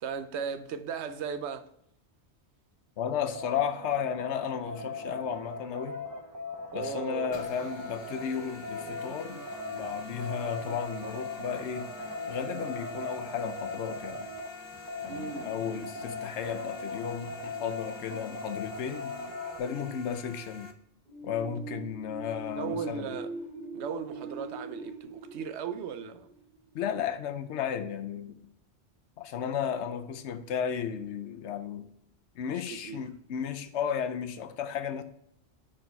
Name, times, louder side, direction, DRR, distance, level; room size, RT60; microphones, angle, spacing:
voice 1, 0.0-1.7 6.7-7.7 8.4-8.6 15.1-16.1 22.5-23.3 23.7-26.3 32.5-33.0, right 6 dB, 75° right, 0.9 m, -37 dB
voice 2, 3.0-6.0 6.7-9.4 9.7-11.9 12.3-14.3 15.0-19.1 19.6-20.7 21.2-23.1 26.7-28.5 29.2-31.9 32.4-35.0, left 8 dB, 80° left, 0.9 m, -34 dB
sound 1, 3.3-19.6, left 2 dB, 25° right, 0.5 m, -39 dB
sound 2, 7.3-20.7, left 5 dB, 35° left, 0.5 m, -47 dB
sound 3, 21.1-26.7, right 2 dB, 45° right, 2.2 m, -42 dB
5.0 x 4.4 x 4.5 m
omnidirectional pair, 1.2 m